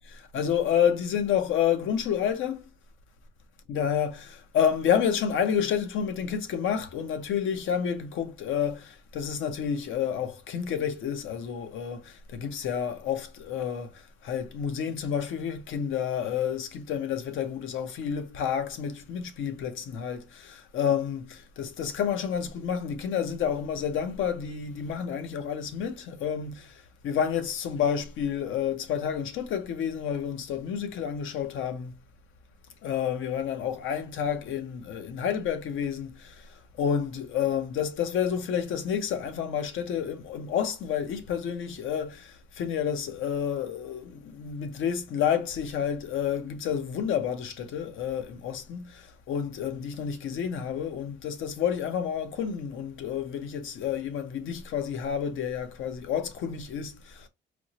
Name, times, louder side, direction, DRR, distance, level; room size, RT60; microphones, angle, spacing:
voice 1, 0.1-2.7 3.7-26.7 27.0-32.0 32.8-36.5 36.8-57.3, left 8 dB, 80° left, 0.8 m, -29 dB
4.3 x 2.0 x 2.8 m
cardioid pair, 90°, 20 cm